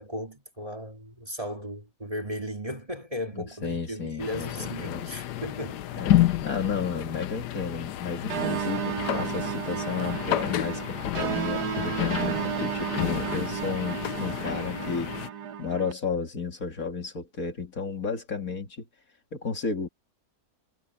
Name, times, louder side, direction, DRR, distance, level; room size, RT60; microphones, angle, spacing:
voice 1, 0.0-5.8, equal, 20° right, 2.5 m, -36 dB
voice 2, 3.3-5.1 6.0-15.1 15.6-18.8 19.3-19.9, left 5 dB, 55° left, 2.7 m, -33 dB
sound 1, 4.2-15.3, left 13 dB, 80° left, 1.3 m, -30 dB
sound 2, 8.3-15.9, right 8 dB, 75° right, 1.5 m, -32 dB
omnidirectional pair, 1.8 m